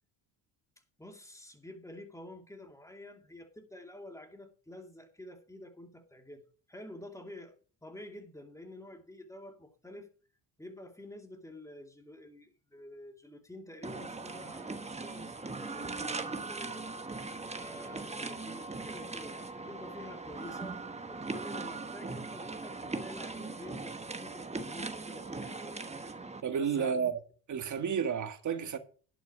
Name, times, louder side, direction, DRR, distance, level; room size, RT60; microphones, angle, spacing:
voice 1, 1.0-6.4 6.7-7.5 7.8-10.1 10.6-17.0 17.5-20.8 21.1-25.8 26.6-27.1, left 1 dB, 5° left, 2.4 m, -49 dB
sound 1, 13.8-26.4, right 3 dB, 15° right, 1.2 m, -40 dB
voice 2, 26.4-27.2 27.5-28.8, right 7 dB, 45° right, 1.8 m, -31 dB
11.0 x 6.1 x 6.0 m
supercardioid pair, 85°, 42 cm